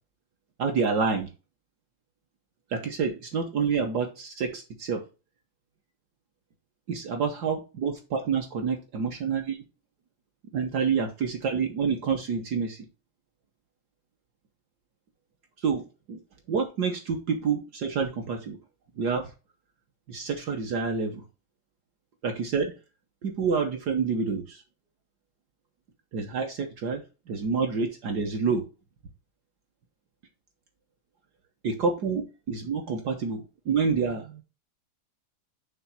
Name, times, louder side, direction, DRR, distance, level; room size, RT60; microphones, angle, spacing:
voice 1, 0.6-1.3 2.7-5.0 6.9-9.6 10.5-12.8 15.6-15.8 16.1-16.2 16.5-18.6 19.0-19.3 20.1-21.2 22.2-22.7 23.2-24.6 26.1-27.0 27.3-28.6 31.6-34.4, right 5 dB, 60° right, 3 dB, 1.3 m, -28 dB
6.0 x 3.2 x 5.5 m, 0.31 s
omnidirectional pair, 2.3 m